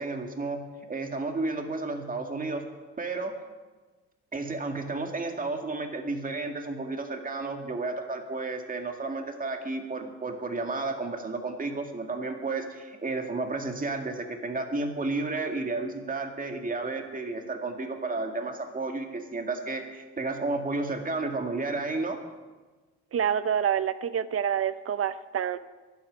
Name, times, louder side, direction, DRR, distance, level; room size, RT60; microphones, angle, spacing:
voice 1, 0.0-2.6 3.0-3.4 4.3-22.2, right 3 dB, 30° right, 4 dB, 2.1 m, -32 dB
voice 2, 23.1-25.6, right 8 dB, 50° right, 14 dB, 0.8 m, -27 dB
11.5 x 8.5 x 9.9 m, 1.3 s
supercardioid pair, 60°, 29 cm